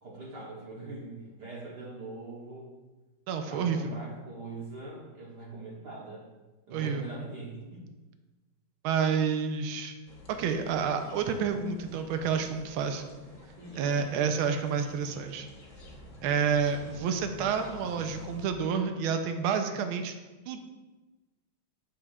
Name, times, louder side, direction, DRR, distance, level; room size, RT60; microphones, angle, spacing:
voice 1, 0.0-2.8 3.5-6.3 6.7-7.9 13.6-14.0, right 3 dB, 60° right, -5 dB, 1.6 m, -42 dB
voice 2, 3.3-3.9 6.7-7.1 8.8-9.9 10.3-13.0 13.8-15.5 16.2-20.1 20.5-20.6, right 6 dB, 85° right, 7 dB, 1.5 m, -29 dB
sound 1, 10.1-18.5, left 1 dB, 45° left, 1.2 m, -49 dB
9.8 x 6.4 x 2.4 m, 1.2 s
omnidirectional pair, 2.3 m